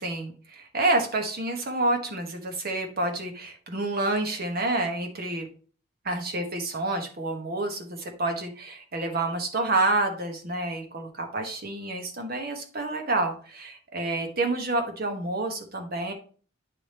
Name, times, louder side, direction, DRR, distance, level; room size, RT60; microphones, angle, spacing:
voice 1, 0.0-5.5 6.0-16.1, right 2 dB, 45° right, 4 dB, 1.2 m, -28 dB
9.7 x 3.4 x 4.3 m, 0.41 s
head